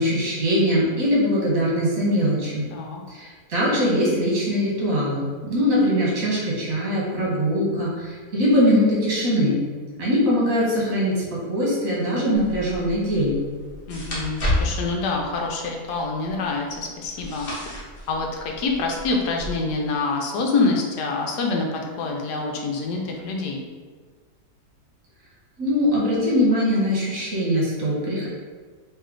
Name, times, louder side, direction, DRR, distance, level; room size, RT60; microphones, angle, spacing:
voice 1, 0.0-2.6 3.1-9.6 10.0-13.3 25.6-28.3, equal, 55° right, -5 dB, 1.6 m, -22 dB
voice 2, 2.7-3.0 13.9-17.5 17.8-23.6, left 3 dB, 80° left, 1 dB, 1.2 m, -26 dB
sound 1, 12.3-19.5, left 1 dB, 40° left, 1.1 m, -32 dB
3.2 x 3.2 x 3.7 m, 1.5 s
omnidirectional pair, 1.7 m